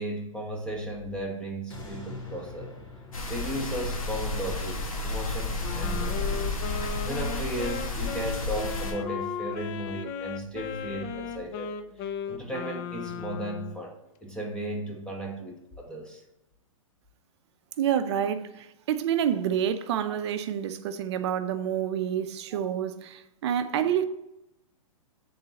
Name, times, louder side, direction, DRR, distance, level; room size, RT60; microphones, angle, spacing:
voice 1, 0.0-2.7 3.3-6.6 7.0-11.7 12.0-16.2 20.1-20.2 23.8-23.9, right 1 dB, 5° left, 1.0 m, -35 dB
sound 1, 1.7-6.8 7.3-7.4, left 3 dB, 60° left, 2.1 m, -46 dB
sound 2, 3.1-8.9, left 2 dB, 80° left, 1.3 m, -31 dB
Wind instrument woodwind instrument, 5.6-13.8, left 7 dB, 30° left, 0.3 m, -36 dB
voice 2, 17.8-24.0, right 9 dB, 55° right, 0.6 m, -28 dB
8.8 x 3.9 x 2.9 m
hypercardioid pair, 135°, 18 cm